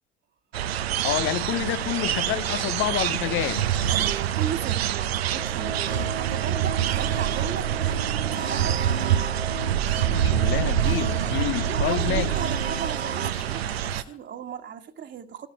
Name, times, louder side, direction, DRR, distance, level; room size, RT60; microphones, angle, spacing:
sound 1, 0.5-14.0, right 10 dB, 70° right, 0.8 m, -26 dB
voice 1, 1.0-3.7 10.0-12.4, left 15 dB, 40° left, 0.6 m, -28 dB
Bicycle, 3.0-5.4 10.4-10.5 11.3-11.4 12.5-12.6 12.8-14.2, left 5 dB, 80° left, 2.5 m, -48 dB
voice 2, 3.9-9.3 11.7-15.5, right 8 dB, 35° right, 1.6 m, -36 dB
sound 2, 5.3-13.3, right 4 dB, 85° right, 1.5 m, -34 dB
14.0 x 11.0 x 4.8 m
figure-of-eight pair, 65°, 32 cm